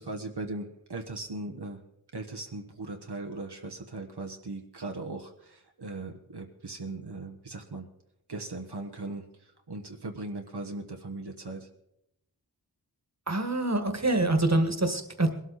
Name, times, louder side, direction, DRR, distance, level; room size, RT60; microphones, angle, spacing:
voice 1, 0.0-1.8 2.1-7.8 8.3-9.2 9.7-11.7, right 2 dB, 75° right, 3 dB, 1.3 m, -38 dB
voice 2, 13.3-15.3, right 2 dB, 40° right, 7 dB, 1.7 m, -25 dB
21.0 x 12.5 x 4.2 m, 0.82 s
wide cardioid pair, 45°, 40 cm